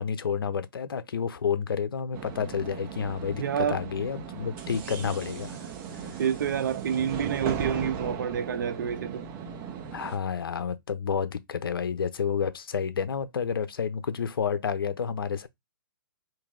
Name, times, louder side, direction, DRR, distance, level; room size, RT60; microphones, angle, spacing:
voice 1, 0.0-5.6 5.9-6.2 9.9-15.5, left 7 dB, 85° left, 0.6 m, -30 dB
sound 1, 2.1-10.2, right 7 dB, 20° right, 0.6 m, -37 dB
voice 2, 3.4-3.8 6.2-9.3, right 8 dB, 60° right, 0.6 m, -28 dB
3.1 x 2.6 x 3.7 m
hypercardioid pair, 155°, 12 cm